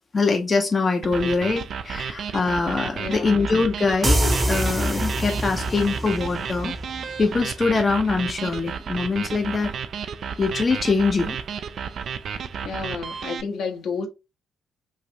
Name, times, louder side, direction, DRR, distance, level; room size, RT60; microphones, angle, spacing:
voice 1, 0.1-6.7 7.2-9.7 10.4-11.4, left 4 dB, 35° left, 0.5 m, -23 dB
sound 1, 1.0-13.4, right 7 dB, 55° right, 0.3 m, -32 dB
voice 2, 3.0-3.4 12.6-14.1, left 5 dB, 65° left, 0.8 m, -31 dB
sound 2, 4.0-7.6, right 1 dB, 20° right, 0.7 m, -25 dB
3.1 x 2.4 x 2.7 m
hypercardioid pair, 45°, 0 cm